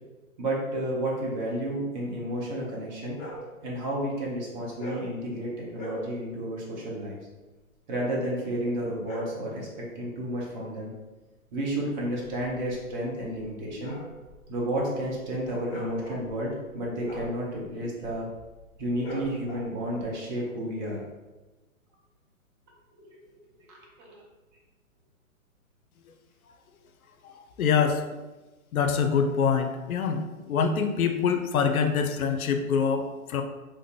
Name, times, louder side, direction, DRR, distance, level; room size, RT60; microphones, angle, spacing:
voice 1, 0.4-3.2 3.6-7.2 7.9-10.9 11.5-14.0 14.5-18.3 18.8-21.0 22.9-23.2 23.7-24.2, right 1 dB, 35° right, -3 dB, 0.8 m, -31 dB
sound 1, 3.1-3.5 4.7-5.2 5.7-6.1 8.8-9.5 12.0-20.0, equal, 15° left, 1.3 m, -41 dB
voice 2, 27.2-28.2 28.7-33.4, left 6 dB, 75° left, 6 dB, 0.5 m, -25 dB
3.2 x 2.5 x 2.8 m, 1.2 s
hypercardioid pair, 130°, 43 cm